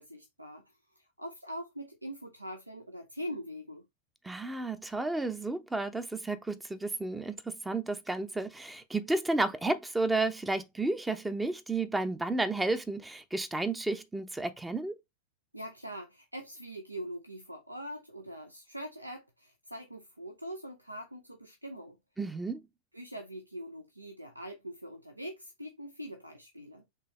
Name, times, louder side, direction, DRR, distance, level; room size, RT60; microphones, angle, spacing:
voice 1, 0.0-3.9 15.5-22.0 22.9-26.8, equal, 85° right, 0.5 m, -43 dB
voice 2, 4.2-14.9 22.2-22.6, right 2 dB, 10° right, 0.6 m, -32 dB
4.5 x 3.4 x 3.2 m
figure-of-eight pair, 90°, 0 cm